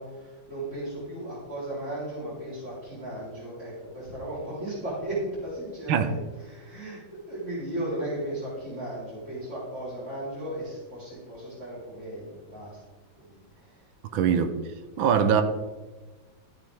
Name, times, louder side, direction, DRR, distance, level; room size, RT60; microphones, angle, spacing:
voice 1, 0.0-12.8 13.2-14.2, right 1 dB, 35° right, 4.7 m, -36 dB
voice 2, 14.1-14.5 15.0-15.4, right 7 dB, 80° right, 1.6 m, -22 dB
13.5 x 8.9 x 3.6 m
omnidirectional pair, 2.2 m